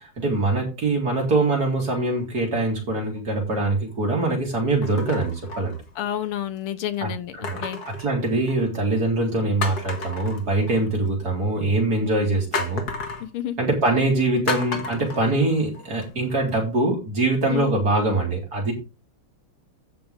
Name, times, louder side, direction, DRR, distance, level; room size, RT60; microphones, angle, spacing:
voice 1, 0.2-5.7 7.0-12.8 13.6-18.7, right 2 dB, 45° right, 4.4 m, -23 dB
sound 1, 1.9-2.4 3.1-3.2 4.8-6.3 7.4-8.8 9.2-9.3 9.6-11.1 12.5-13.3 14.5-16.0 16.5-16.6, left 4 dB, 50° left, 1.9 m, -33 dB
voice 2, 6.0-7.8 13.2-13.6 17.5-17.7, left 11 dB, 85° left, 1.9 m, -30 dB
15.0 x 6.0 x 3.6 m
omnidirectional pair, 2.4 m